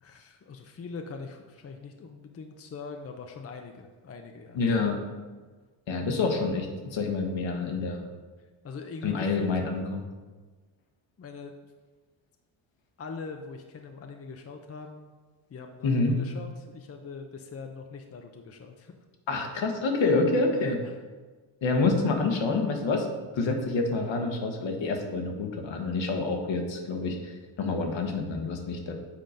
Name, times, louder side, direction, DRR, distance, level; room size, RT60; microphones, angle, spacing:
voice 1, 0.0-4.6 8.6-9.5 11.2-11.5 13.0-15.1 15.5-18.9 20.5-20.8, left 4 dB, 30° left, 4 dB, 0.6 m, -42 dB
voice 2, 4.5-5.0 5.9-8.0 9.0-10.0 15.8-16.2 19.3-20.8 21.6-23.1 23.3-28.9, left 3 dB, 65° left, 3 dB, 1.4 m, -27 dB
7.7 x 3.8 x 5.1 m, 1.3 s
cardioid pair, 80°, 49 cm